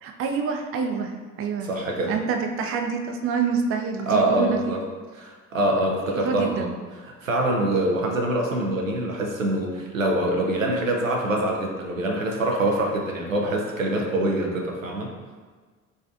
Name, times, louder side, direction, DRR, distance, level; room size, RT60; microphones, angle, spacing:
voice 1, 0.0-1.7 2.1-4.8 6.2-6.7, right 5 dB, 35° right, 4 dB, 0.5 m, -27 dB
voice 2, 1.6-2.1 4.1-4.8 5.1-6.7 7.2-15.1, right 1 dB, 90° right, 0 dB, 0.5 m, -24 dB
5.3 x 3.3 x 2.4 m, 1.4 s
figure-of-eight pair, 55°, 39 cm